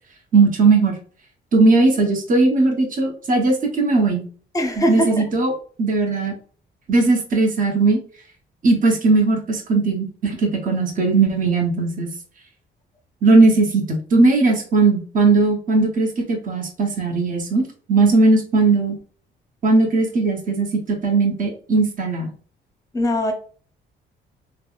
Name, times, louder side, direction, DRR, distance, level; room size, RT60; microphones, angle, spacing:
voice 1, 0.3-1.0 1.5-4.2 4.8-5.5 5.8-6.3 6.9-8.0 8.6-12.1 13.2-19.0 19.6-22.3, right 3 dB, 40° right, 2 dB, 0.9 m, -18 dB
voice 2, 4.5-5.1 22.9-23.3, equal, 15° left, 4 dB, 0.7 m, -20 dB
3.3 x 2.1 x 2.4 m, 0.43 s
cardioid pair, 90°, 20 cm